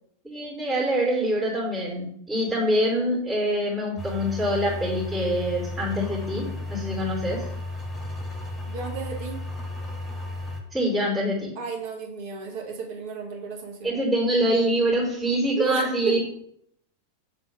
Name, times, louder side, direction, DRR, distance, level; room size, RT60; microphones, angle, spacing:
voice 1, 0.2-7.4 10.7-11.5 13.8-16.2, equal, 10° right, -4 dB, 2.1 m, -25 dB
sound 1, 4.0-10.6, left 2 dB, 10° left, 1.2 m, -34 dB
voice 2, 8.7-9.4 11.6-14.0 15.6-16.2, right 5 dB, 50° right, 0 dB, 1.6 m, -33 dB
7.0 x 3.4 x 5.1 m, 0.71 s
figure-of-eight pair, 90°, 0 cm